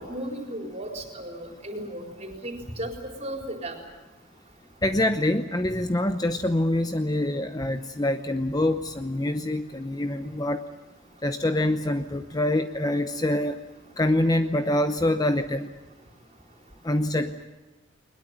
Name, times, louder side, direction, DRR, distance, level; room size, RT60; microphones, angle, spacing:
voice 1, 0.0-3.8, right 1 dB, 30° right, 2 dB, 4.2 m, -35 dB
voice 2, 4.8-10.6 11.2-13.6 14.0-15.7 16.8-17.4, left 1 dB, 20° left, 8 dB, 0.7 m, -25 dB
21.5 x 21.0 x 9.3 m, 1.1 s
head